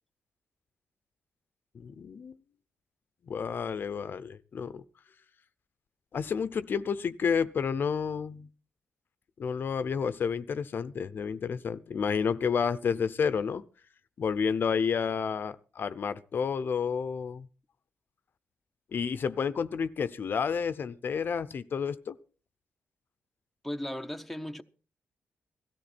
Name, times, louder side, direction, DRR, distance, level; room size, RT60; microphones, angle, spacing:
voice 1, 1.7-2.4 3.3-4.8 6.1-8.5 9.4-13.6 14.2-17.5 18.9-22.2, left 6 dB, 50° left, 0.6 m, -30 dB
voice 2, 23.6-24.6, left 1 dB, ahead, 0.8 m, -36 dB
16.5 x 14.0 x 4.3 m
wide cardioid pair, 125°, 4 cm